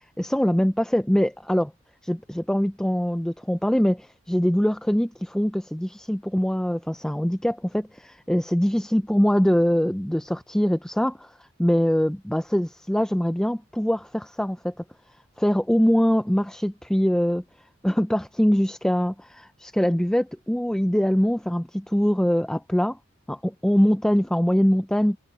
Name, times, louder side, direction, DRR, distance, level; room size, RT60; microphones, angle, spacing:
voice 1, 0.2-1.7 2.0-11.3 11.6-14.7 15.4-17.4 17.8-23.0 23.3-25.2, equal, 5° left, 0.4 m, -23 dB
head